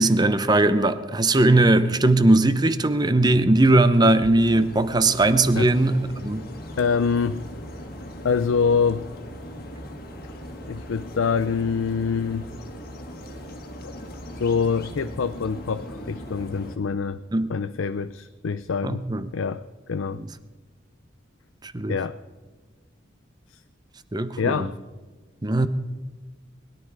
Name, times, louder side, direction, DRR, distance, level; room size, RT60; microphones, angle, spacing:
voice 1, 0.0-6.4 17.3-17.5 18.8-19.3 21.6-22.0 24.1-24.7 25.4-25.7, right 2 dB, 20° right, 12 dB, 0.7 m, -19 dB
sound 1, 4.1-16.8, equal, 50° left, 1.7 m, -39 dB
voice 2, 6.8-7.4 8.2-9.1 10.7-12.4 13.8-13.9 14.4-17.2 17.5-19.1 19.3-20.2 21.9-22.2 23.5-23.6 24.4-24.8, left 5 dB, 90° left, 12 dB, 0.5 m, -25 dB
21.0 x 12.0 x 4.8 m, 1.3 s
head